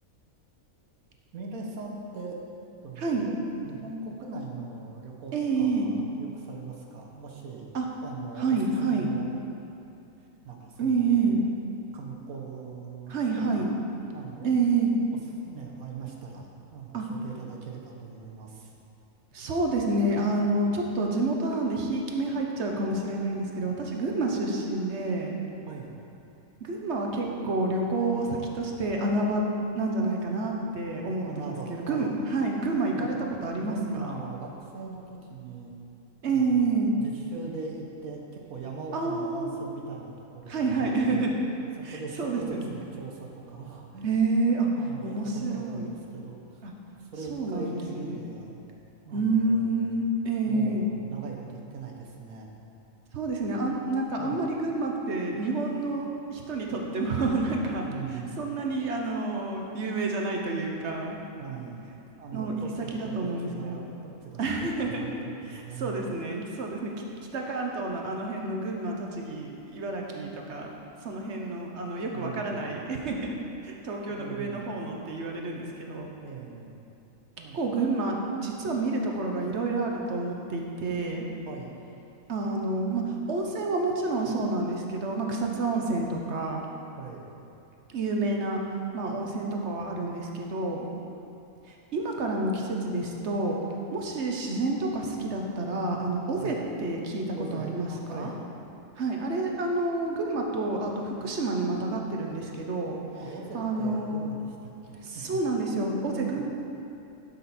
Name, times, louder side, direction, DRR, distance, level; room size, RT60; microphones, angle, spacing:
voice 1, 1.3-2.4 2.8-3.3 3.6-7.7 8.0-9.3 10.4-11.4 11.9-13.7 14.1-14.5 15.4-18.7 25.7-25.9 31.2-32.2 32.9-33.1 33.5-35.7 36.3-41.3 41.8-44.3 44.7-46.7 47.0-48.6 49.0-49.9 50.4-52.5 54.2-54.4 57.8-58.4 61.4-61.8 62.2-64.4 64.8-66.1 72.1-72.7 74.1-74.7 76.2-76.8 77.4-77.6 81.4-81.8 87.0-87.3 96.4-96.6 97.3-98.4 103.2-105.7 106.2-106.4, right 5 dB, 75° right, 0 dB, 1.5 m, -40 dB
voice 2, 3.0-3.3 5.3-5.9 7.7-7.8 8.4-9.1 10.8-11.4 13.1-13.7 14.4-14.9 16.9-17.0 19.3-25.4 26.6-29.5 29.7-33.2 33.4-33.7 34.1-34.2 36.2-36.9 38.9-39.5 40.5-41.3 41.8-42.7 44.0-44.7 45.0-45.9 46.6-46.7 47.3-48.2 49.1-50.9 53.1-57.9 58.4-61.2 62.3-63.8 64.4-65.0 65.5-66.9 67.3-70.7 71.0-73.4 73.6-76.1 77.5-81.3 82.3-86.7 87.9-88.6 88.9-90.9 91.6-93.6 93.9-98.3 99.0-103.0 103.5-104.3 105.0-106.4, right 3 dB, 55° right, 0 dB, 1.1 m, -29 dB
12.0 x 5.9 x 4.2 m, 2.7 s
omnidirectional pair, 1.5 m